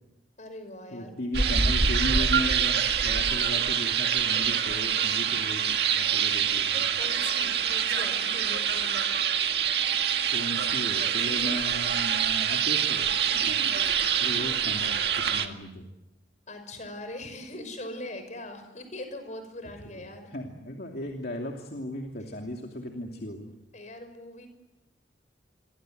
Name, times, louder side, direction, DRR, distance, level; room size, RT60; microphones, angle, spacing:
voice 1, 0.4-1.1 6.9-9.0 16.5-20.3 23.7-24.5, left 1 dB, 45° left, 8 dB, 5.9 m, -41 dB
voice 2, 0.9-6.9 10.3-13.7 14.2-15.9 19.9-23.5, equal, 60° left, 2 dB, 2.8 m, -36 dB
sound 1, 1.3-15.5, right 7 dB, 65° right, 2.0 m, -25 dB
29.0 x 23.5 x 8.0 m, 0.92 s
head